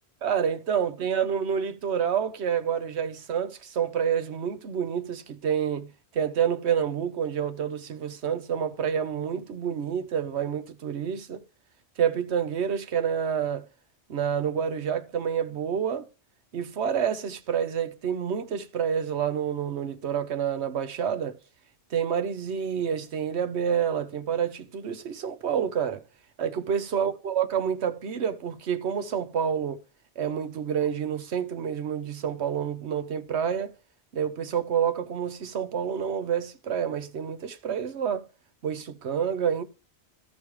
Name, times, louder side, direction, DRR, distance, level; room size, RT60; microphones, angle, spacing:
voice 1, 0.2-5.9 6.1-11.4 12.0-13.7 14.1-16.0 16.5-21.3 21.9-26.0 26.4-29.8 30.2-33.7 34.1-38.2 38.6-39.6, right 8 dB, 80° right, 1.1 m, -28 dB
15.0 x 5.4 x 3.1 m
omnidirectional pair, 1.1 m